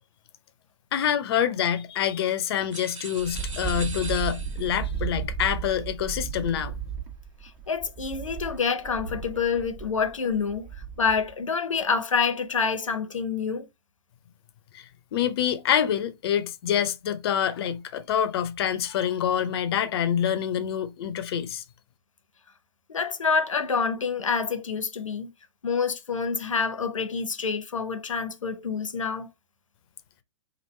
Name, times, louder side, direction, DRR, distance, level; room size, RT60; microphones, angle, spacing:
voice 1, 0.9-6.8 14.7-21.6, left 9 dB, 50° left, 0.6 m, -26 dB
sound 1, 2.7-4.9, right 4 dB, 90° right, 1.0 m, -40 dB
Wind, 3.2-11.3, right 7 dB, 35° right, 1.1 m, -34 dB
voice 2, 7.4-10.7 11.0-13.7 22.9-25.3 25.6-29.3, left 5 dB, 90° left, 0.7 m, -27 dB
3.0 x 2.5 x 4.3 m
hypercardioid pair, 130°, 16 cm